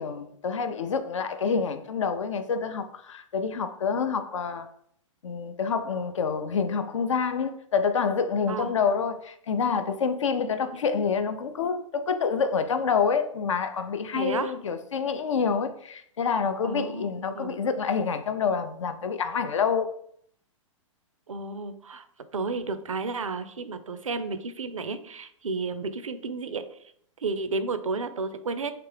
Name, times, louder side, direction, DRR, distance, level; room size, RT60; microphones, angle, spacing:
voice 1, 0.0-4.7 5.2-19.9, left 6 dB, 65° left, 0.4 m, -27 dB
voice 2, 14.1-14.5 16.6-17.5 21.3-22.0 22.3-26.7 27.2-28.7, right 3 dB, 75° right, 0.4 m, -32 dB
3.4 x 2.9 x 3.2 m
figure-of-eight pair, 105°, 17 cm